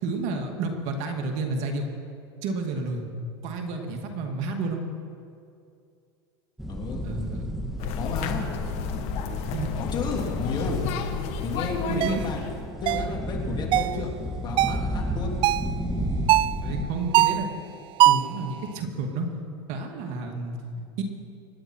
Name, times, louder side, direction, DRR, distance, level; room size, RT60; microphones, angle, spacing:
voice 1, 0.0-1.9 2.4-3.0 3.4-4.8 7.0-7.4 9.5-9.7 11.8-12.3 16.6-17.5 18.0-19.3 19.7-21.0, right 3 dB, 55° right, 3 dB, 2.2 m, -30 dB
sound 1, 6.6-16.8, equal, ahead, 1.7 m, -32 dB
voice 2, 6.7-7.0 7.9-8.5 9.8-10.8 11.4-12.4 12.8-14.1 14.4-15.4, left 4 dB, 35° left, 0 dB, 3.2 m, -32 dB
sound 2, 7.8-12.6, left 7 dB, 55° left, 1.5 m, -32 dB
sound 3, 12.0-12.2 12.9-13.1 13.7-14.0 14.6-14.8 15.4-15.7 16.3-16.6 17.1-17.5 18.0-18.4, right 14 dB, 40° right, 0.3 m, -21 dB
26.0 x 10.0 x 4.5 m, 2.4 s
supercardioid pair, 115°, 13 cm